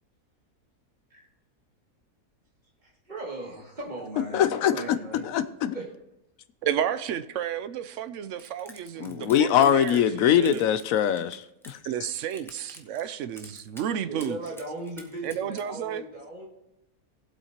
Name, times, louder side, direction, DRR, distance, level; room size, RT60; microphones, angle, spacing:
voice 1, 2.8-4.4 4.7-5.3 5.7-5.9 11.8-11.9 14.0-16.5, right 2 dB, 30° right, 2.4 m, -38 dB
voice 2, 4.3-4.7 5.2-5.8 9.0-11.8, left 10 dB, 65° left, 1.0 m, -22 dB
voice 3, 6.6-10.6 11.8-14.4 15.2-16.0, right 9 dB, 65° right, 0.8 m, -32 dB
sound 1, 8.4-10.1 10.4-11.8 12.1-13.0 13.4-13.9 14.2-15.6, equal, ahead, 0.7 m, -48 dB
18.0 x 8.0 x 2.9 m
omnidirectional pair, 1.7 m